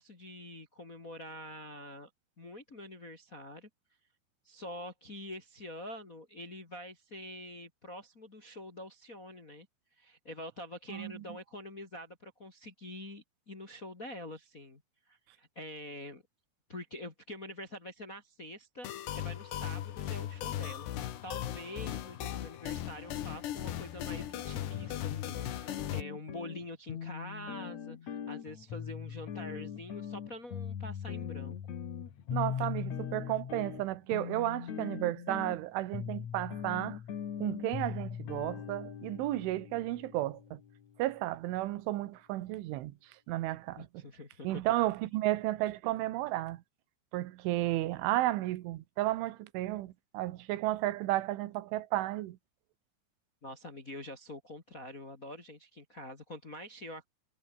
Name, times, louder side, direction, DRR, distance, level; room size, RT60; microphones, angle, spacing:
voice 1, 0.0-2.1 2.4-3.7 4.4-9.7 10.0-14.8 15.1-16.2 16.7-20.9 21.2-31.6 43.7-44.6 53.4-57.1, left 1 dB, 30° left, 1.5 m, -46 dB
voice 2, 10.9-11.2 32.3-37.0 37.4-40.6 41.0-43.0 43.3-43.9 44.4-46.6 47.1-52.4, right 16 dB, 85° right, 3.7 m, -33 dB
sound 1, 18.8-26.0, left 11 dB, 70° left, 3.8 m, -38 dB
sound 2, 24.7-41.0, left 8 dB, 50° left, 2.7 m, -40 dB
omnidirectional pair, 5.4 m